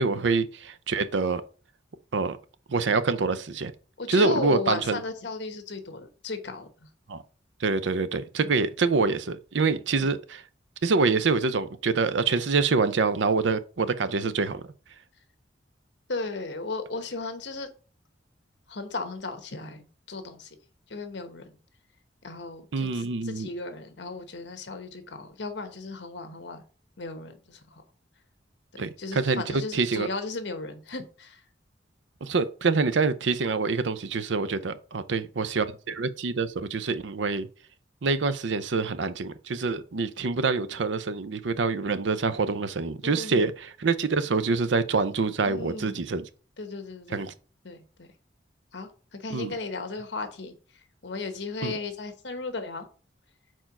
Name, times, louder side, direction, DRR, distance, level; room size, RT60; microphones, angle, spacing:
voice 1, 0.0-1.4 2.1-2.4 2.7-3.7 4.1-5.0 7.1-7.2 7.6-10.4 10.8-14.6 22.7-23.5 28.8-30.1 32.2-37.5 38.0-46.3 47.1-47.3 49.3-49.5 51.6-51.7, right 4 dB, 80° right, 0.6 m, -26 dB
voice 2, 4.0-6.7 10.0-10.1 16.1-17.7 18.7-20.5 20.9-21.4 22.2-26.6 27.0-27.8 28.7-31.4 43.0-43.5 45.4-46.0 46.6-47.3 47.6-48.1 48.7-50.5 51.0-52.9, left 3 dB, 70° left, 1.1 m, -35 dB
4.5 x 4.5 x 5.8 m
head